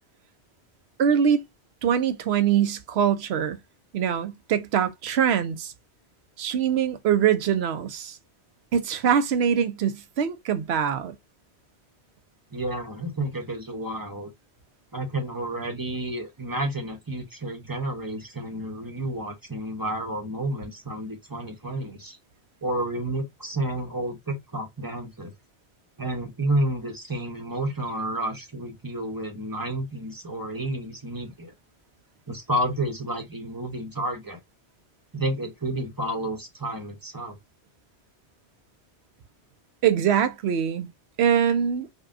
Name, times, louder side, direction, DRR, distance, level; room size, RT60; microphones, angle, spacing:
voice 1, 1.0-1.4 1.8-3.6 3.9-5.7 6.4-8.2 8.7-11.1 39.8-40.9 41.2-41.9, right 8 dB, 75° right, 0.9 m, -23 dB
voice 2, 12.5-14.3 14.9-22.2 22.6-25.3 26.0-31.5 32.3-34.4 35.1-37.4, right 1 dB, 20° right, 0.8 m, -30 dB
5.3 x 2.3 x 2.5 m
omnidirectional pair, 1.1 m